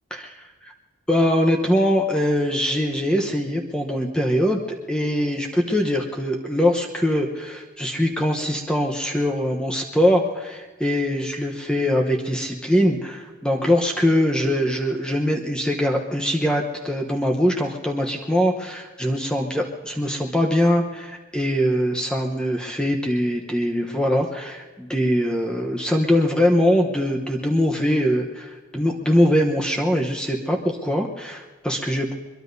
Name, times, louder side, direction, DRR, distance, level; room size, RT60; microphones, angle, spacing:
voice 1, 1.1-4.6 4.9-32.1, equal, 5° left, 1 dB, 0.9 m, -22 dB
23.0 x 22.0 x 2.7 m, 1.3 s
head